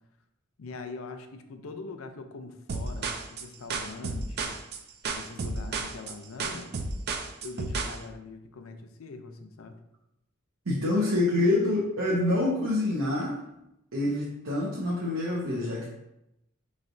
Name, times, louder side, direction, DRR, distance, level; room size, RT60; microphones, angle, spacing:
voice 1, 0.6-4.5 5.1-6.7 7.4-9.8, left 3 dB, 75° left, 7 dB, 0.5 m, -42 dB
sound 1, 2.7-8.0, right 3 dB, 50° right, 0.4 m, -32 dB
voice 2, 10.6-13.3 13.9-15.9, left 2 dB, 80° right, -5 dB, 0.8 m, -26 dB
5.5 x 3.2 x 2.6 m, 0.86 s
head